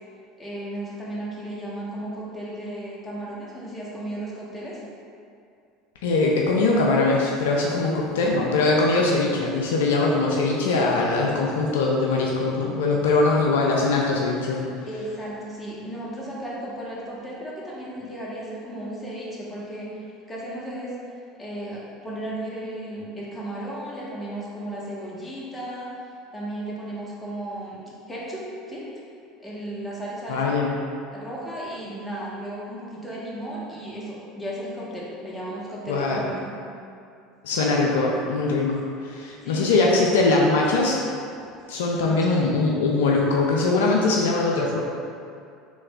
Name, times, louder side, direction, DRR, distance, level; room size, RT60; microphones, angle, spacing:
voice 1, 0.4-4.8 14.9-21.0 21.4-25.9 26.3-28.9 29.4-30.5 31.1-36.5 39.4-40.1 41.9-42.3, right 1 dB, 15° left, -6 dB, 1.1 m, -35 dB
voice 2, 6.0-14.6 30.3-30.7 35.9-36.3 37.4-41.0 41.7-44.8, left 3 dB, 75° left, -2 dB, 0.4 m, -22 dB
3.2 x 3.1 x 3.6 m, 2.4 s
hypercardioid pair, 75°, 0 cm